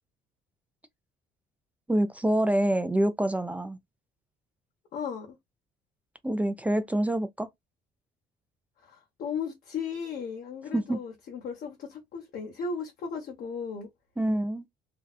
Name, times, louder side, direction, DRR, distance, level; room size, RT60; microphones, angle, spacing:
voice 1, 1.9-3.8 6.2-7.5 10.7-11.0 14.2-14.6, right 1 dB, 10° right, 0.3 m, -26 dB
voice 2, 4.9-5.4 8.8-13.9, left 5 dB, 60° left, 0.9 m, -36 dB
2.7 x 2.2 x 2.2 m
cardioid pair, 110°, 17 cm